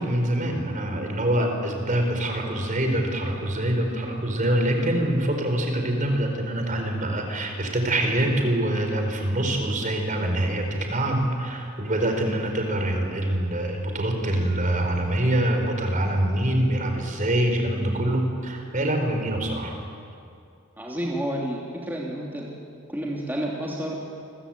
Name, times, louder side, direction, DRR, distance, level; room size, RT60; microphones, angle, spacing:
voice 1, 0.0-19.7, right 1 dB, 40° right, 4 dB, 4.3 m, -25 dB
voice 2, 20.8-22.5 22.9-24.0, right 1 dB, 10° right, -3 dB, 3.0 m, -30 dB
28.5 x 22.5 x 8.9 m, 2.4 s
head